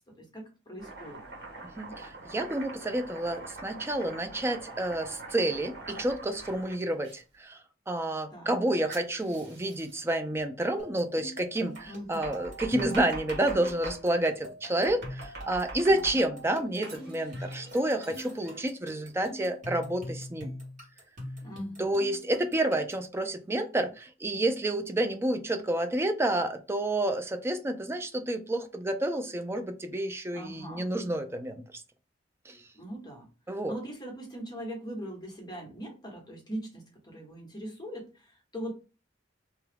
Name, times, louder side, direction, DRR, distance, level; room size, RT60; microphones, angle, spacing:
voice 1, 0.2-1.2 8.3-8.7 11.8-12.3 15.9-16.2 21.4-22.0 30.3-30.9 32.7-33.2 33.6-38.7, right 1 dB, 25° left, 0 dB, 1.1 m, -41 dB
Domestic sounds home sounds, 0.8-7.2 8.9-10.0 11.8-14.0 14.8-16.4 16.8-18.6, right 2 dB, 60° right, 1.2 m, -44 dB
voice 2, 1.8-7.6 7.9-20.5 21.8-31.6 32.5-32.6 33.5-33.7, right 1 dB, 15° right, 7 dB, 0.4 m, -29 dB
sound 1, 10.8-23.1, equal, 45° right, 1.5 m, -43 dB
2.8 x 2.3 x 3.3 m, 0.32 s
head